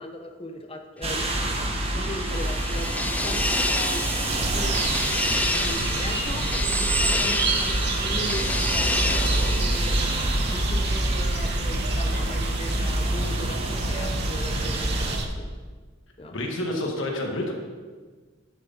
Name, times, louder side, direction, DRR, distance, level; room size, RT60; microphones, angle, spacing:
voice 1, 0.0-4.8 5.5-10.2 10.5-15.1 15.3-15.5 16.2-16.4, left 1 dB, 30° left, 4 dB, 1.0 m, -38 dB
sound 1, 1.0-15.2, right 1 dB, 30° right, 1.3 m, -27 dB
sound 2, 1.7-10.8, left 2 dB, 10° left, 0.3 m, -29 dB
sound 3, 4.3-15.3, right 3 dB, 60° right, 1.0 m, -29 dB
voice 2, 16.3-17.5, left 1 dB, 70° left, 1 dB, 1.6 m, -28 dB
11.5 x 7.7 x 4.1 m, 1.4 s
head